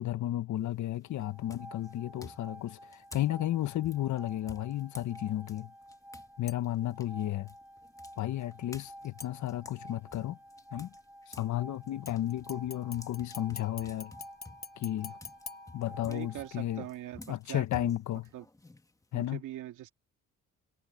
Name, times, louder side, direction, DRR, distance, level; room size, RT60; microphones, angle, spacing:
voice 1, 0.0-5.7 6.4-7.5 8.2-10.4 10.7-10.9 11.4-14.1 14.8-15.1 15.7-16.8 17.3-18.3 19.1-19.4, left 13 dB, 70° left, 1.1 m, -33 dB
Footsteps barefoot on wet tile, 0.6-1.0 1.5-6.3 6.6-11.5 11.9-19.3, left 2 dB, 10° left, 1.3 m, -52 dB
sound 1, 1.1-16.9, equal, 5° right, 2.6 m, -52 dB
sound 2, 6.5-6.9 9.2-9.9 12.1-16.4 16.9-17.0, left 5 dB, 30° left, 1.2 m, -48 dB
voice 2, 16.0-17.9 18.3-18.4 19.1-19.9, right 13 dB, 85° right, 2.5 m, -42 dB
cardioid pair, 90°, 30 cm